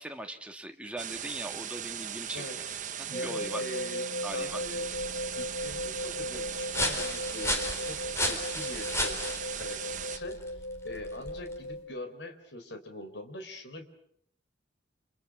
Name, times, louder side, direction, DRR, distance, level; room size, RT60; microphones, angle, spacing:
voice 1, 0.0-2.5 3.0-3.6 4.2-4.6, right 1 dB, 5° right, 4 dB, 1.9 m, -40 dB
sound 1, 1.0-10.2, right 9 dB, 45° right, 1.1 m, -38 dB
voice 2, 2.3-4.0 4.3-4.9 5.3-8.0 8.2-9.2 9.6-10.4 10.8-13.8, left 1 dB, 70° left, 7 dB, 4.2 m, -43 dB
sound 2, 3.1-11.8, left 1 dB, 40° left, 7.1 m, -37 dB
sound 3, 4.4-11.7, left 1 dB, 15° left, 4.2 m, -36 dB
29.0 x 28.0 x 6.2 m, 0.68 s
head